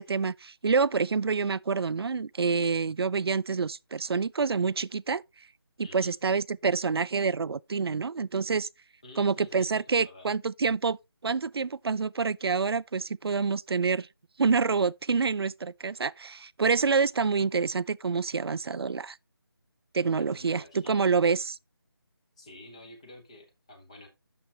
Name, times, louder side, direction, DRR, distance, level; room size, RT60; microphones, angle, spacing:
voice 1, 0.0-5.2 5.8-8.7 9.2-11.0 11.2-14.1 14.4-19.2 19.9-21.6, right 5 dB, 75° right, 0.4 m, -27 dB
voice 2, 5.8-6.2 9.0-10.3 20.2-21.1 22.4-24.1, left 2 dB, 15° left, 0.9 m, -50 dB
8.8 x 6.9 x 2.8 m
figure-of-eight pair, 175°, 13 cm